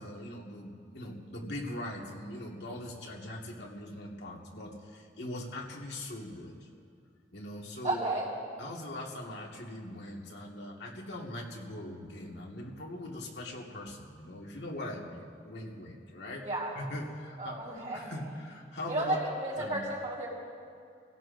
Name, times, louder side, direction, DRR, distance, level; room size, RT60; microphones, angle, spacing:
voice 1, 0.0-6.7 7.3-8.0 8.6-16.5 16.8-17.6 17.9-19.2 19.6-19.9, left 1 dB, 75° left, -1 dB, 1.9 m, -41 dB
voice 2, 7.8-8.3 16.4-16.7 17.4-18.1 18.9-20.3, right 2 dB, 40° right, -6 dB, 4.4 m, -32 dB
27.5 x 17.0 x 2.6 m, 2.3 s
head